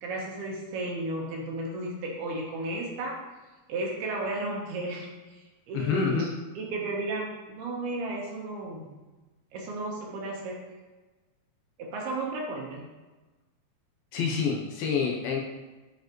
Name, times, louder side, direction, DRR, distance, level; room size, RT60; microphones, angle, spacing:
voice 1, 0.0-3.2 3.7-6.3 6.6-9.0 9.5-10.6 11.8-12.8, right 2 dB, 75° right, -2 dB, 2.9 m, -34 dB
voice 2, 5.7-6.3 14.1-15.4, left 6 dB, 75° left, -1 dB, 2.2 m, -27 dB
10.5 x 4.7 x 3.0 m, 1.2 s
omnidirectional pair, 4.8 m